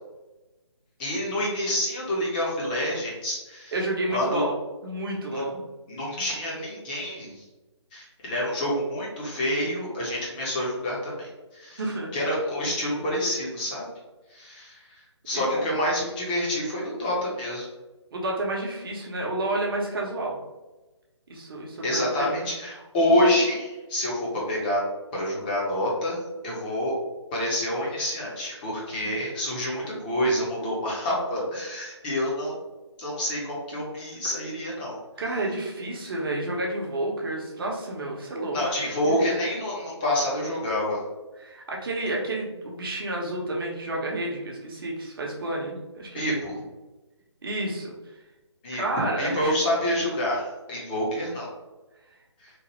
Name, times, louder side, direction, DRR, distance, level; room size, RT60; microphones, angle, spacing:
voice 1, 1.0-3.7 4.1-4.4 5.3-5.4 5.9-7.4 7.9-11.8 12.1-13.8 14.3-17.7 21.8-24.8 25.1-26.9 27.3-32.6 33.0-35.0 38.5-41.0 46.1-46.6 48.6-51.5 52.4-52.5, left 1 dB, 20° left, -5 dB, 0.7 m, -27 dB
voice 2, 3.7-4.5 4.8-5.6 11.8-12.1 15.3-15.7 18.1-20.4 21.3-22.5 29.0-29.1 35.2-39.2 41.4-46.3 47.4-47.9 48.7-49.5, right 2 dB, 50° right, -1 dB, 0.8 m, -30 dB
3.0 x 2.1 x 3.0 m, 1.1 s
figure-of-eight pair, 150°, 15 cm